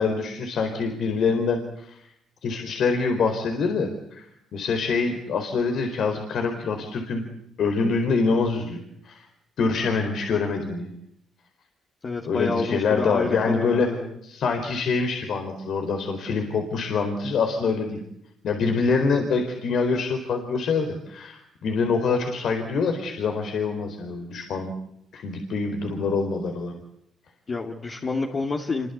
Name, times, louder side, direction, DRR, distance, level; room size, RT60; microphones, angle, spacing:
voice 1, 0.0-2.0 2.4-4.3 4.5-7.2 7.6-9.3 9.6-10.9 12.2-13.9 14.2-18.0 18.4-24.7 25.1-26.7, left 4 dB, 65° left, 5 dB, 4.4 m, -25 dB
voice 2, 12.0-14.2 27.5-28.9, left 3 dB, 40° left, 1 dB, 3.0 m, -28 dB
28.0 x 23.5 x 8.4 m, 0.76 s
cardioid pair, 90°, 0 cm